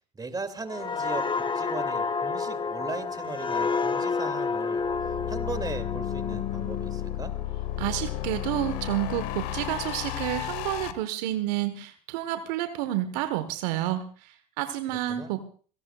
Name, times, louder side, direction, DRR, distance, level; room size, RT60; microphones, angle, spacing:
voice 1, 0.1-7.3 14.9-15.4, right 3 dB, 20° right, 9 dB, 2.5 m, -38 dB
sound 1, 0.7-8.2 8.6-8.8, left 4 dB, 20° left, 0.7 m, -30 dB
sound 2, 4.8-10.9, left 13 dB, 75° left, 1.4 m, -33 dB
voice 2, 7.8-15.4, right 13 dB, 75° right, 10 dB, 1.3 m, -30 dB
26.5 x 17.0 x 2.4 m, 0.43 s
hypercardioid pair, 80°, 21 cm